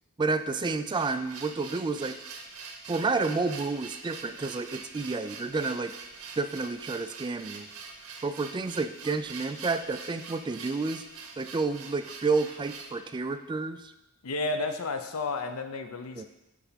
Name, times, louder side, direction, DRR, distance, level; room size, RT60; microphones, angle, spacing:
voice 1, 0.2-2.2 2.9-5.9 6.4-7.7 8.2-11.0 11.4-13.9 16.2-16.3, right 3 dB, 20° right, 9 dB, 0.3 m, -30 dB
sound 1, 0.8-13.0, right 5 dB, 80° right, 1.0 m, -44 dB
voice 2, 14.2-16.3, left 3 dB, 75° left, 7 dB, 0.7 m, -32 dB
8.2 x 3.4 x 5.7 m, 0.93 s
head